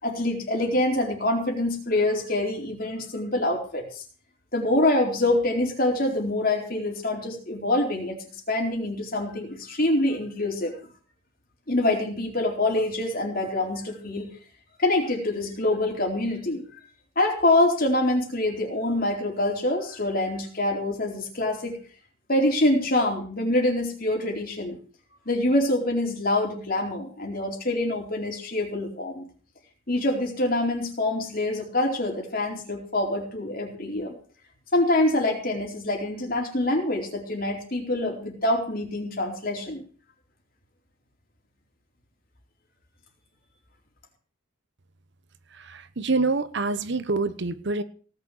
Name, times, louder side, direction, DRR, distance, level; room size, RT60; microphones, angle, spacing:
voice 1, 0.0-4.0 4.5-8.2 8.5-10.8 11.7-14.4 14.8-16.6 17.2-21.8 22.3-24.8 25.3-29.2 29.9-34.2 34.7-39.8, left 1 dB, 45° left, 2 dB, 4.2 m, -25 dB
voice 2, 45.5-47.8, right 3 dB, 55° right, 13 dB, 1.0 m, -26 dB
18.0 x 6.7 x 8.5 m, 0.42 s
head